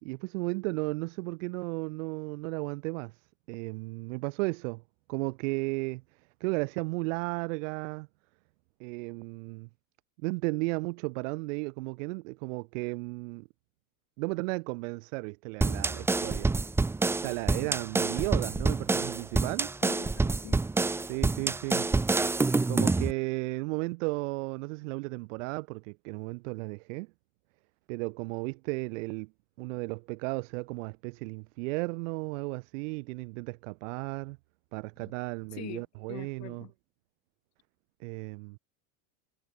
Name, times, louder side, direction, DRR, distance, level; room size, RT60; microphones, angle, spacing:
voice 1, 0.0-3.1 3.5-4.8 5.1-6.0 6.4-8.1 8.8-9.7 10.2-13.5 14.2-16.6 17.2-19.7 21.1-21.9 22.7-27.1 27.9-29.3 29.6-34.4 34.7-36.6 38.0-38.6, right 27 dB, 60° right, 2.0 m, -34 dB
sound 1, 15.6-23.1, right 3 dB, 5° right, 0.7 m, -27 dB
voice 2, 19.8-20.6 35.0-35.1 35.5-35.8 36.1-36.7, left 17 dB, 40° left, 5.3 m, -44 dB
supercardioid pair, 155°, 42 cm